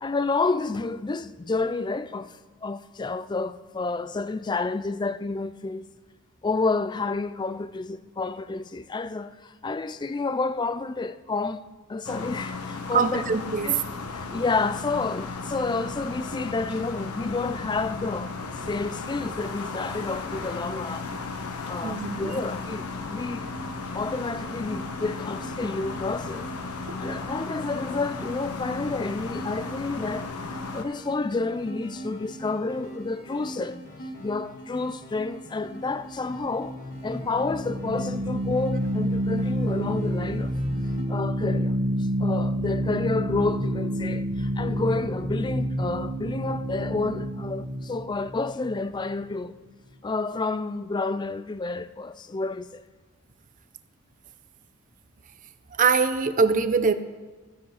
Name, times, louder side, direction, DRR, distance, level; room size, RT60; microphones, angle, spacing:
voice 1, 0.0-5.9 6.4-11.6 11.9-13.2 13.6-13.8 14.1-18.3 18.6-21.1 21.6-23.5 23.9-26.5 27.0-30.3 30.7-33.8 34.2-36.8 37.0-40.5 41.1-41.8 42.2-49.6 50.0-52.8, left 3 dB, 20° left, 0.3 m, -30 dB
sound 1, 12.1-30.9, left 4 dB, 85° left, 1.1 m, -35 dB
voice 2, 12.9-13.7 21.8-22.3 26.9-27.0 55.8-56.9, right 5 dB, 35° right, 0.6 m, -23 dB
sound 2, 23.4-41.0, right 1 dB, 35° left, 1.9 m, -42 dB
sound 3, 36.1-49.4, equal, 85° right, 1.7 m, -29 dB
14.5 x 8.1 x 4.9 m
head